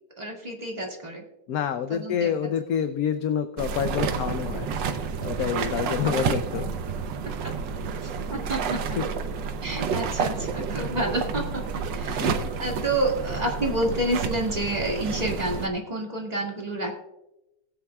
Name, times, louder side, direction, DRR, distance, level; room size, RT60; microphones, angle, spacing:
voice 1, 0.2-1.2 1.9-2.3 6.0-6.1 7.4-7.5 8.0-9.0 9.6-16.9, right 1 dB, 25° right, -1 dB, 2.1 m, -29 dB
voice 2, 1.5-4.7 5.2-6.7 9.0-9.1 12.1-12.5, left 8 dB, 65° left, 9 dB, 1.0 m, -28 dB
sound 1, 3.6-15.7, right 6 dB, 85° right, 1.5 m, -30 dB
19.5 x 8.6 x 2.3 m, 0.91 s
omnidirectional pair, 1.9 m